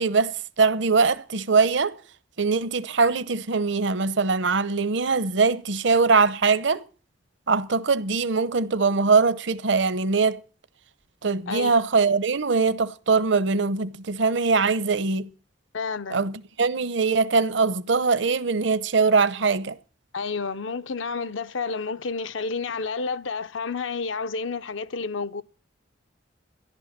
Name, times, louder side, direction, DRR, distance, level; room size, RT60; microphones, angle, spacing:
voice 1, 0.0-1.9 2.4-6.8 7.5-10.4 11.2-15.3 16.1-19.8, right 4 dB, 65° right, 0.8 m, -22 dB
voice 2, 15.7-16.3 20.1-25.4, left 4 dB, 75° left, 0.7 m, -30 dB
14.0 x 11.5 x 7.4 m
head